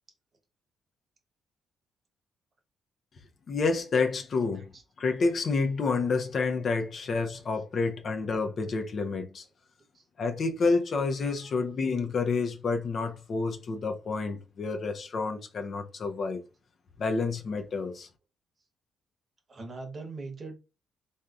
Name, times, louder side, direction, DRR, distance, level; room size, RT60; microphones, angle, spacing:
voice 1, 3.5-4.7 5.0-9.5 10.2-16.4 17.0-18.1, left 4 dB, 50° left, 0.6 m, -29 dB
voice 2, 19.5-20.6, right 3 dB, 40° right, 0.9 m, -41 dB
3.4 x 2.6 x 2.3 m
cardioid pair, 90°, 0 cm